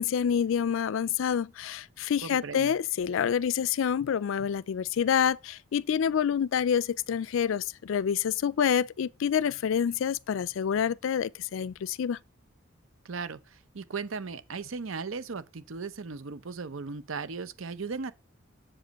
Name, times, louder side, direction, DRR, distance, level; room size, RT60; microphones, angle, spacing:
voice 1, 0.0-12.2, left 8 dB, 70° left, 0.3 m, -27 dB
voice 2, 2.2-2.7 13.0-18.1, right 4 dB, 70° right, 0.7 m, -37 dB
7.3 x 5.2 x 5.1 m
head